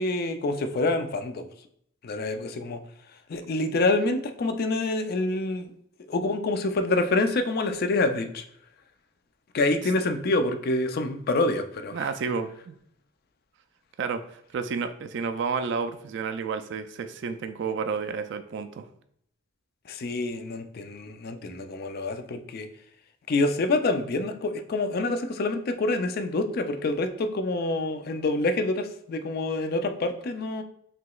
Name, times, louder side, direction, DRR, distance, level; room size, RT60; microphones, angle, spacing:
voice 1, 0.0-1.5 2.0-2.8 3.3-5.7 6.1-8.4 9.5-12.1 19.9-22.7 23.3-30.6, left 2 dB, 50° left, 8 dB, 0.4 m, -27 dB
voice 2, 11.9-12.8 14.0-18.9, right 5 dB, 60° right, 9 dB, 0.3 m, -31 dB
5.9 x 2.9 x 2.3 m, 0.69 s
head